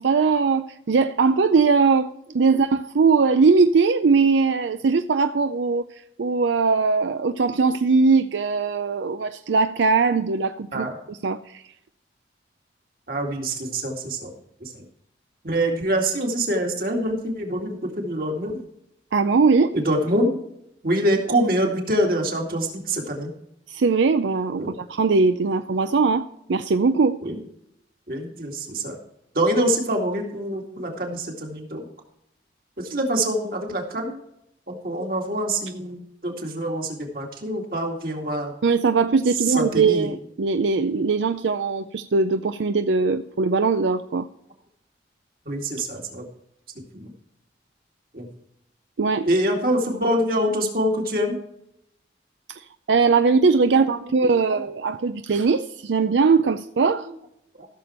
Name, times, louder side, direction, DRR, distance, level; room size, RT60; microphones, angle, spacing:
voice 1, 0.0-2.1 2.3-5.9 6.2-11.6 19.1-19.7 23.7-26.2 26.5-27.2 38.6-44.3 49.0-49.3 52.9-57.1, right 4 dB, 85° right, 10 dB, 0.5 m, -20 dB
voice 2, 13.1-14.3 14.6-14.9 15.4-18.6 19.7-20.4 20.8-23.3 24.6-24.8 27.2-27.4 28.1-29.0 29.3-31.9 32.8-34.2 34.7-38.5 39.4-40.1 43.0-43.1 45.5-46.3 46.9-47.1 48.1-48.3 49.2-51.4 53.7-54.6 57.6-57.7, right 1 dB, 50° right, 1 dB, 2.3 m, -25 dB
15.0 x 6.9 x 4.3 m, 0.79 s
head